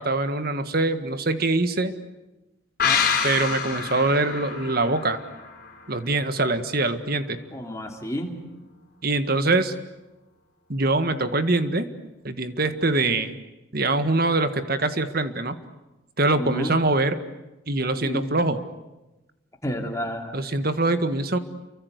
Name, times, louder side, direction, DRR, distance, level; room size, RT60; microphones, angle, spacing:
voice 1, 0.0-1.9 3.2-5.2 5.9-7.4 9.0-9.7 10.7-11.9 12.2-13.4 13.7-15.5 16.2-17.2 17.7-18.6 20.3-21.4, right 2 dB, 50° right, 10 dB, 1.7 m, -23 dB
sound 1, 2.8-6.3 6.6-6.7, left 6 dB, 45° left, 5.4 m, -27 dB
voice 2, 7.5-8.3 16.4-16.7 18.0-18.3 19.6-20.4, equal, 15° left, 2 dB, 3.2 m, -30 dB
29.0 x 24.0 x 8.2 m, 1.0 s
head